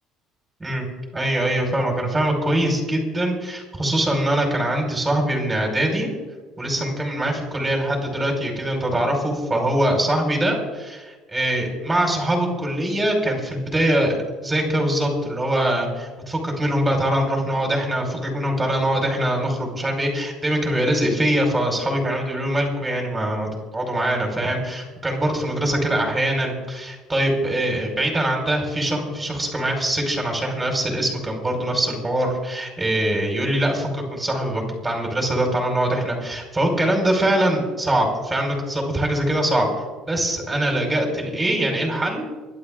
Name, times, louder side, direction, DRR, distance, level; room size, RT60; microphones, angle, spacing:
voice 1, 1.1-6.1 6.6-39.7 40.1-42.3, right 1 dB, 10° right, 1 dB, 5.1 m, -23 dB
26.0 x 12.0 x 3.8 m, 1.2 s
cardioid pair, 130°, 0 cm